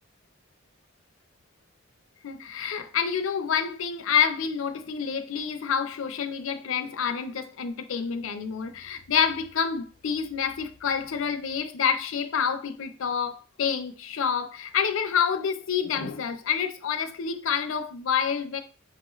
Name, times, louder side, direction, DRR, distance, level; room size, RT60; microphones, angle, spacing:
voice 1, 2.2-18.6, left 7 dB, 75° left, 0.5 m, -28 dB
5.8 x 2.3 x 3.1 m
head